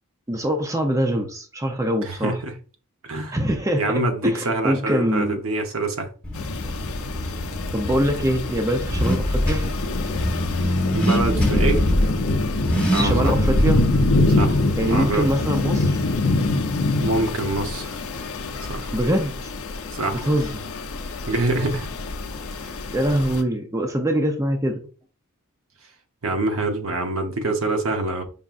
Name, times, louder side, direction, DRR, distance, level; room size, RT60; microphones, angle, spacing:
voice 1, 0.3-2.4 3.3-5.4 7.7-9.7 12.9-13.9 14.8-16.0 18.9-19.5 20.2-20.7 22.9-24.8, right 1 dB, 15° right, 0.5 m, -23 dB
voice 2, 2.0-2.5 3.0-3.4 3.8-6.1 10.9-11.8 12.9-13.3 14.4-14.6 14.9-15.3 17.0-17.9 18.7-18.9 19.9-20.3 21.3-21.9 22.6-22.8 26.2-28.2, right 2 dB, 65° right, 0.9 m, -25 dB
Car / Accelerating revving vroom, 6.2-15.4, equal, 5° left, 1.1 m, -24 dB
sound 1, 6.3-23.4, left 2 dB, 70° left, 0.6 m, -26 dB
5.4 x 3.6 x 2.4 m
head